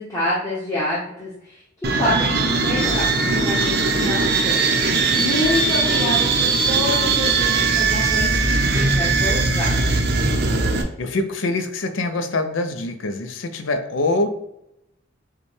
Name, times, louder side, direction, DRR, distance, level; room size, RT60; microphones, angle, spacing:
voice 1, 0.0-4.6 5.1-9.9, left 1 dB, 15° left, -9 dB, 0.9 m, -27 dB
sound 1, 1.8-10.8, right 3 dB, 50° right, 0.6 m, -20 dB
voice 2, 11.0-14.3, left 2 dB, 70° left, 8 dB, 0.5 m, -24 dB
6.7 x 2.2 x 3.1 m, 0.83 s
head